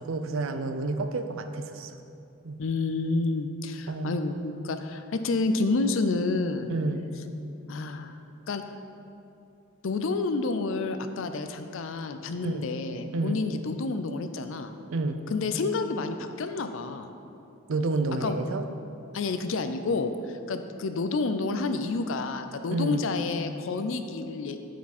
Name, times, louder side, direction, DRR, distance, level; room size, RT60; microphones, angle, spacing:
voice 1, 0.0-1.9 2.4-2.6 3.9-4.2 6.7-7.1 12.4-12.7 13.1-13.4 14.9-15.2 17.7-18.7 22.7-23.1, right 3 dB, 65° right, 8 dB, 0.5 m, -29 dB
voice 2, 2.6-6.7 7.7-8.2 8.5-8.7 9.8-14.7 15.3-17.1 18.2-18.4 19.1-24.6, left 3 dB, 60° left, 8 dB, 0.4 m, -29 dB
9.3 x 4.5 x 4.2 m, 2.7 s
head